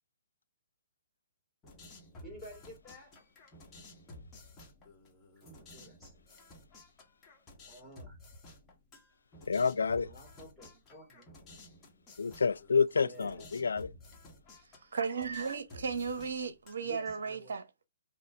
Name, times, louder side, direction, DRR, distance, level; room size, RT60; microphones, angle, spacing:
sound 1, 1.6-17.1, left 2 dB, 20° left, 1.3 m, -54 dB
voice 1, 2.2-3.1 5.4-6.2 7.6-8.2 9.9-11.3 12.9-13.5 16.8-17.6, right 1 dB, 5° right, 2.0 m, -51 dB
voice 2, 9.5-10.1 12.2-13.9, left 5 dB, 70° left, 0.3 m, -28 dB
voice 3, 14.9-17.9, right 5 dB, 60° right, 0.7 m, -35 dB
4.2 x 2.4 x 4.2 m
figure-of-eight pair, 125°, 0 cm